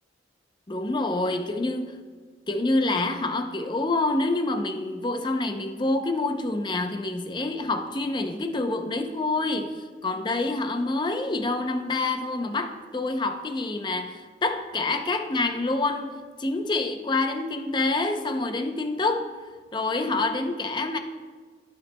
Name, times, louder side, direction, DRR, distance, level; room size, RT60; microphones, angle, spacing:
voice 1, 0.7-2.0 2.5-19.3 19.7-21.0, left 2 dB, 25° left, 6 dB, 0.6 m, -27 dB
14.0 x 5.9 x 2.2 m, 1.5 s
head